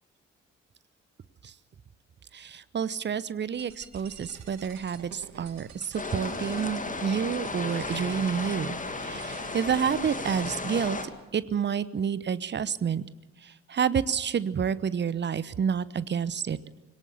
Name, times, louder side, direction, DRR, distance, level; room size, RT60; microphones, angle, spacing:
voice 1, 2.3-11.0 11.3-13.0 13.4-16.6, right 7 dB, 30° right, 18 dB, 0.9 m, -29 dB
sound 1, 3.6-11.1, right 7 dB, 50° right, 2.5 m, -49 dB
sound 2, 5.9-11.0, left 3 dB, 20° left, 2.1 m, -34 dB
22.0 x 18.0 x 6.9 m, 1.1 s
figure-of-eight pair, 40°, 35 cm